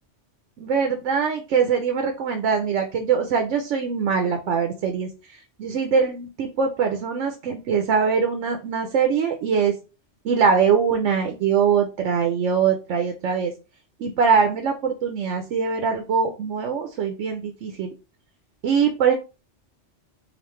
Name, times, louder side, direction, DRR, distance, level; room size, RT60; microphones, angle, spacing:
voice 1, 0.6-9.7 10.2-13.5 14.0-17.9 18.6-19.1, right 6 dB, 85° right, 5 dB, 1.0 m, -22 dB
5.1 x 2.4 x 3.1 m, 0.31 s
omnidirectional pair, 1.2 m